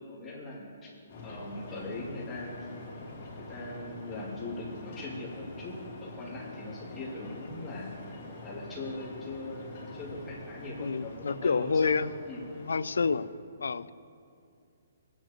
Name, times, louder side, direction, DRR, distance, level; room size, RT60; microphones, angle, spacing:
voice 1, 0.1-0.9 1.2-2.8 3.3-8.0 8.4-12.5, left 2 dB, 10° left, -6 dB, 2.6 m, -40 dB
sound 1, 1.1-13.3, left 2 dB, 40° left, 3.2 m, -45 dB
voice 2, 10.8-12.1 12.6-13.3 13.6-13.9, left 5 dB, 90° left, 17 dB, 0.4 m, -28 dB
24.0 x 9.6 x 3.0 m, 2.4 s
hypercardioid pair, 160°, 0 cm